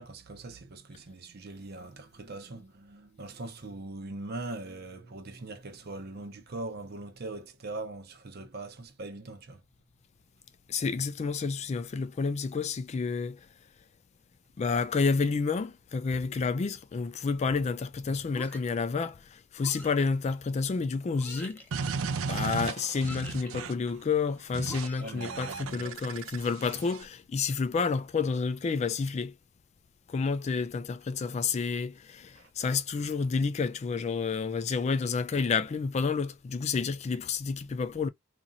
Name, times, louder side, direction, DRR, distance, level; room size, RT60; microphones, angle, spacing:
voice 1, 0.0-9.6 25.0-26.0 32.4-32.5, right 2 dB, 50° right, 0.7 m, -41 dB
voice 2, 10.7-13.5 14.6-21.6 22.3-29.3 30.1-38.1, left 5 dB, 35° left, 0.3 m, -30 dB
sound 1, 18.3-18.8 19.6-20.1 21.1-21.7 22.9-23.5 24.7-25.5, left 1 dB, 10° left, 0.7 m, -46 dB
sound 2, 21.7-23.9 24.5-24.9 25.2-27.0, right 5 dB, 90° right, 0.5 m, -35 dB
2.9 x 2.6 x 2.4 m
head